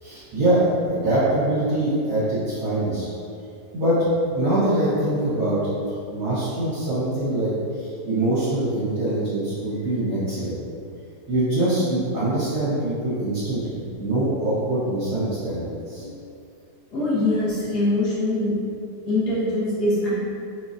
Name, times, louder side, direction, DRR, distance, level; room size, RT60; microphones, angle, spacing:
voice 1, 0.0-3.0 3.7-4.0 4.3-5.8 6.1-7.5 7.8-10.5 11.3-16.1 17.0-17.3 17.7-17.8, right 1 dB, 65° right, -12 dB, 1.9 m, -24 dB
voice 2, 16.9-18.5 19.1-20.1, left 2 dB, 65° left, -10 dB, 1.8 m, -23 dB
4.5 x 3.8 x 2.7 m, 2.5 s
omnidirectional pair, 1.9 m